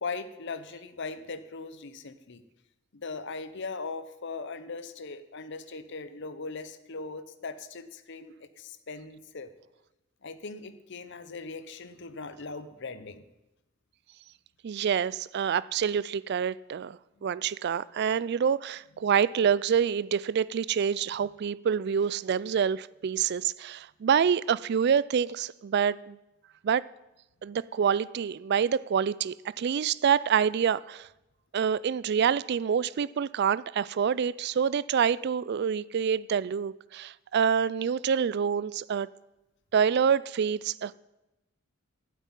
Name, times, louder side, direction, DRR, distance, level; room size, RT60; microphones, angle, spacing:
voice 1, 0.0-2.4 2.9-9.5 10.2-13.2, left 4 dB, 55° left, 12 dB, 0.8 m, -39 dB
voice 2, 14.6-26.2 26.6-26.8 27.4-31.1 31.5-39.1 39.7-40.9, right 7 dB, 50° right, 20 dB, 0.3 m, -27 dB
9.4 x 8.3 x 9.0 m, 0.96 s
head